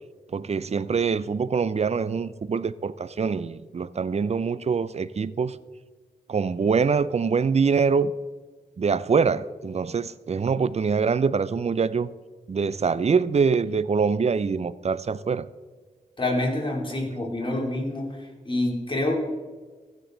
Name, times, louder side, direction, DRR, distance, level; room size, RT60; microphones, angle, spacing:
voice 1, 0.3-5.6 6.3-8.1 8.8-12.1 12.5-15.5, right 5 dB, 45° right, 18 dB, 0.5 m, -24 dB
voice 2, 16.2-19.1, left 1 dB, 30° left, -1 dB, 3.0 m, -27 dB
15.0 x 6.4 x 3.9 m, 1.4 s
cardioid pair, 40°, 16 cm